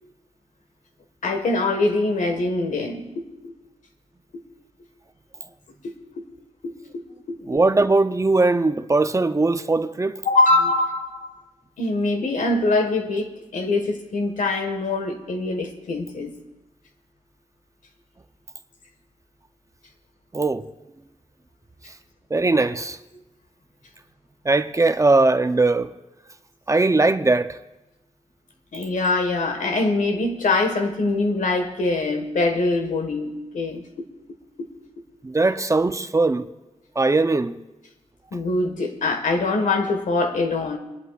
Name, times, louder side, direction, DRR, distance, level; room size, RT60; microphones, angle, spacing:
voice 1, 1.2-3.5 5.8-6.2 6.6-7.0 7.3-7.4 10.2-11.3 11.8-16.3 28.7-33.8 34.6-34.7 38.3-40.8, left 2 dB, 80° left, 1.4 m, -23 dB
voice 2, 7.5-10.2 20.3-20.7 22.3-23.0 24.4-25.9 26.7-27.6 35.2-36.5 37.0-37.6, right 3 dB, 25° right, 0.5 m, -20 dB
29.5 x 11.0 x 2.4 m
cardioid pair, 80°, 13 cm